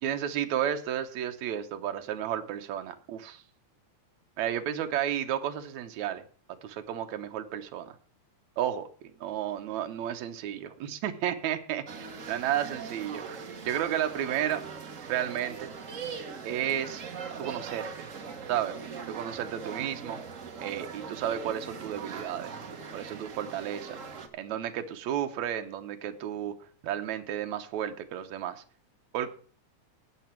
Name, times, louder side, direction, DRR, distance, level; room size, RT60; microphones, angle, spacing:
voice 1, 0.0-3.4 4.4-6.2 6.6-8.0 8.6-8.9 9.2-14.6 15.1-15.7 16.4-17.0 17.4-17.9 18.5-18.8 19.1-20.2 20.6-22.5 22.9-24.0 24.3-26.5 26.8-28.6 29.1-29.3, right 10 dB, 75° right, 6 dB, 2.3 m, -32 dB
sound 1, 11.9-24.3, right 5 dB, 55° right, 0.8 m, -41 dB
18.0 x 6.8 x 4.5 m, 0.43 s
omnidirectional pair, 3.3 m